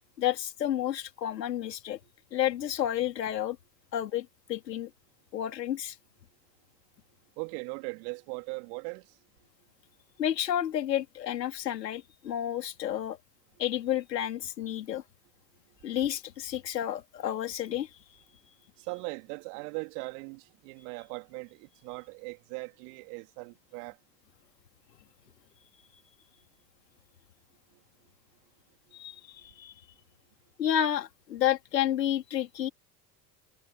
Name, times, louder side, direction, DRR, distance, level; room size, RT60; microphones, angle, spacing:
voice 1, 0.2-2.0 2.3-3.6 3.9-4.9 5.3-6.0 10.2-13.2 13.6-15.0 15.8-17.9 28.9-29.7 30.6-32.7, left 11 dB, 80° left, 2.7 m, -30 dB
voice 2, 7.4-9.2 15.7-15.8 18.8-24.0 27.7-28.1 28.9-29.2, right 34 dB, 65° right, 3.1 m, -40 dB
hypercardioid pair, 70°, 49 cm